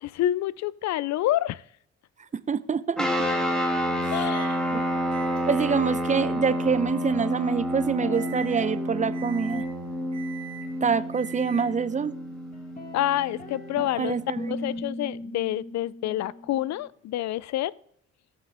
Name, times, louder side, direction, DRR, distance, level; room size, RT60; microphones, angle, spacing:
voice 1, 0.0-1.6 4.1-4.6 12.9-14.2 14.5-17.7, left 13 dB, 65° left, 22 dB, 0.4 m, -28 dB
voice 2, 2.5-3.1 4.0-4.1 4.7-4.8 5.5-9.6 10.8-12.1 13.8-14.5, right 6 dB, 25° right, 15 dB, 0.6 m, -26 dB
sound 1, 3.0-14.8, equal, ahead, 2.1 m, -30 dB
Microwave oven, 4.3-4.6 5.1-11.9, right 9 dB, 60° right, 3.0 m, -46 dB
sound 2, 7.8-9.2 9.5-12.3 12.5-16.9, left 1 dB, 25° left, 1.8 m, -39 dB
17.0 x 5.7 x 3.5 m, 0.65 s
cardioid pair, 90°, 30 cm